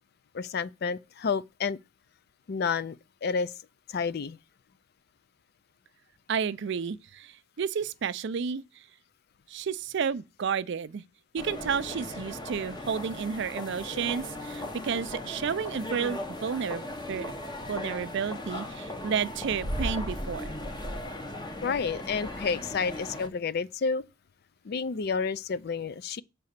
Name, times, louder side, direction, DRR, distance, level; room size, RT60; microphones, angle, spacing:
voice 1, 0.3-1.8 2.5-3.0 3.2-3.5 3.9-4.4 21.6-24.0 24.7-26.2, left 5 dB, 50° left, 0.4 m, -30 dB
voice 2, 6.3-7.3 7.6-8.6 9.5-11.0 11.3-17.3 17.7-20.5, right 6 dB, 60° right, 0.4 m, -31 dB
sound 1, 11.4-23.3, left 1 dB, 20° left, 0.9 m, -37 dB
6.8 x 4.1 x 6.5 m
head